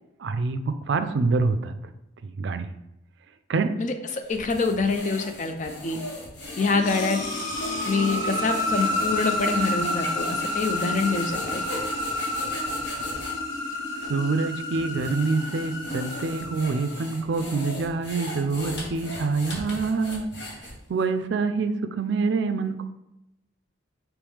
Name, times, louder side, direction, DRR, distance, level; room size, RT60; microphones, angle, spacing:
voice 1, 0.2-1.7 2.2-2.7 3.5-3.7 14.0-20.3 20.9-22.8, right 4 dB, 65° right, 9 dB, 0.4 m, -26 dB
sound 1, 4.2-13.4 14.0-14.1 14.7-21.0, left 1 dB, 55° left, 1.0 m, -38 dB
voice 2, 4.3-6.0 6.6-7.2 7.9-11.6, left 4 dB, 40° left, 6 dB, 0.4 m, -25 dB
sound 2, 6.4-17.2, left 1 dB, 75° left, 1.3 m, -30 dB
4.8 x 3.1 x 3.5 m, 0.87 s
head